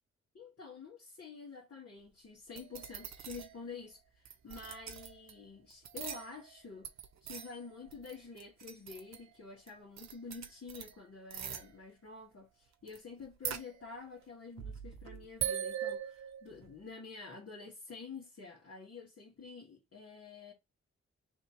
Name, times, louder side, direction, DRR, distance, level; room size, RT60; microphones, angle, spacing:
voice 1, 0.3-6.9 7.2-20.5, left 4 dB, 50° left, 1.7 m, -49 dB
sound 1, 2.5-3.6 4.2-5.3 5.7-6.6 6.8-9.3 9.7-9.8 10.0-10.9 11.3-11.7 12.9-13.0 13.2-14.2 14.6-16.7, right 9 dB, 65° right, 0.7 m, -41 dB
3.5 x 2.7 x 4.6 m
supercardioid pair, 40°, 30 cm